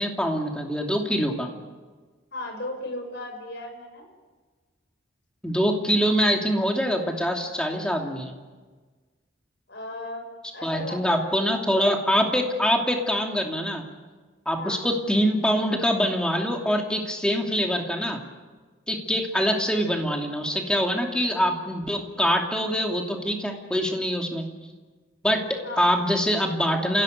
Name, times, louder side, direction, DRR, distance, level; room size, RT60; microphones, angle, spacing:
voice 1, 0.0-1.5 5.4-8.3 10.6-13.8 14.5-18.2 18.9-24.5 25.2-25.4 25.8-27.0, equal, 5° left, 1 dB, 2.7 m, -24 dB
voice 2, 2.3-4.1 9.7-10.3 10.5-11.6 14.6-14.9 25.6-25.8, left 1 dB, 60° left, 4 dB, 6.1 m, -36 dB
28.5 x 17.0 x 9.4 m, 1.4 s
head